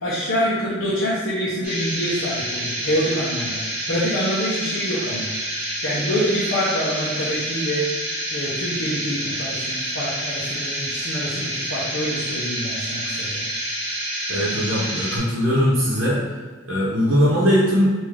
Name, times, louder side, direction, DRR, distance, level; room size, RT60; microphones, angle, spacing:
voice 1, 0.0-3.6 3.9-5.3 5.8-7.9 8.3-13.4, equal, 80° left, -9 dB, 0.7 m, -26 dB
sound 1, 1.6-15.2, right 1 dB, 5° right, 1.1 m, -28 dB
voice 2, 14.3-16.2 16.7-17.9, equal, 70° right, -6 dB, 0.8 m, -20 dB
3.6 x 2.6 x 3.3 m, 1.4 s
head